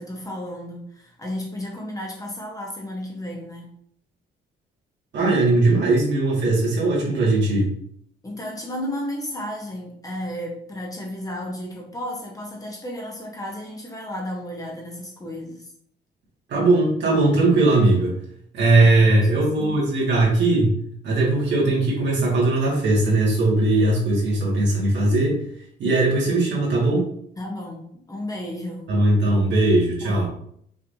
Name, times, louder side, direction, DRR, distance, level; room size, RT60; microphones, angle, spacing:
voice 1, 0.0-3.7 8.2-15.7 18.8-19.8 27.4-28.9 30.0-30.3, left 1 dB, 15° left, -1 dB, 1.0 m, -33 dB
voice 2, 5.1-7.7 16.5-18.1 18.5-20.8 21.0-25.4 25.8-27.1 28.9-30.3, right 2 dB, 65° right, -4 dB, 1.9 m, -19 dB
5.5 x 3.3 x 2.7 m, 0.66 s
cardioid pair, 140°, 20 cm